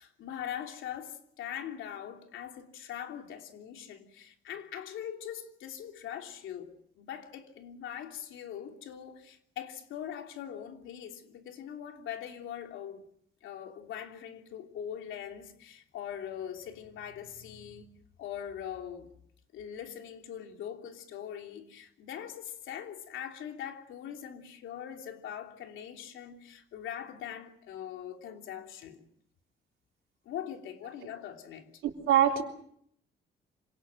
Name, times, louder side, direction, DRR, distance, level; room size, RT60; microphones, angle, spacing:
voice 1, 0.0-13.1 13.4-17.9 18.2-19.1 19.5-29.0 30.2-31.8, left 9 dB, 85° left, 3.2 m, -42 dB
voice 2, 31.8-32.4, right 10 dB, 90° right, 3.5 m, -24 dB
27.0 x 18.5 x 7.5 m
cardioid pair, 90°, 20 cm